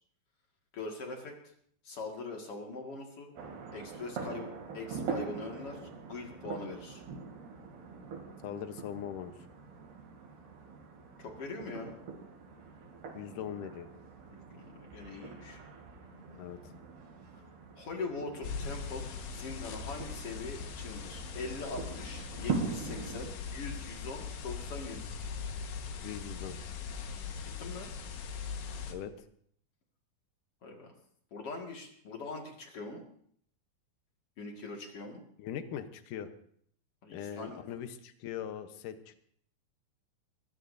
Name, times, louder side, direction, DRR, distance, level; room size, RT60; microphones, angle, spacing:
voice 1, 0.7-1.4 1.8-3.3 3.7-5.8 6.1-7.0 11.2-12.0 14.3-15.6 17.3-17.4 17.8-25.1 27.4-27.9 30.6-30.9 31.3-33.0 34.4-35.2 37.0-37.8, left 3 dB, 45° left, 1 dB, 2.3 m, -42 dB
sound 1, 3.4-23.3, right 5 dB, 70° right, 4.5 m, -43 dB
voice 2, 8.4-9.3 13.1-13.9 16.4-16.6 26.0-26.6 28.9-29.1 35.4-36.3 37.1-39.2, left 9 dB, 70° left, 9 dB, 2.1 m, -40 dB
sound 2, 18.4-28.9, left 5 dB, 90° left, 3.6 m, -40 dB
21.5 x 17.0 x 2.7 m, 0.64 s
omnidirectional pair, 4.7 m